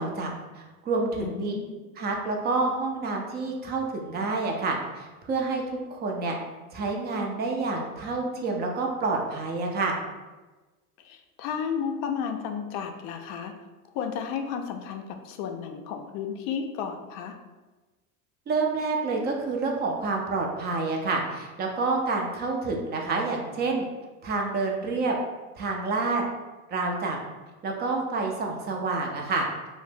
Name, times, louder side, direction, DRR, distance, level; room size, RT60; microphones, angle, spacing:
voice 1, 0.0-1.5 2.0-6.3 6.7-10.0 18.5-23.9 24.2-25.2 25.6-26.2 26.7-27.2 27.6-29.5, right 3 dB, 25° right, 1 dB, 0.4 m, -28 dB
voice 2, 1.2-1.8 11.0-13.5 13.9-17.4, left 7 dB, 50° left, 5 dB, 0.4 m, -33 dB
2.5 x 2.0 x 3.3 m, 1.2 s
hypercardioid pair, 95°, 44 cm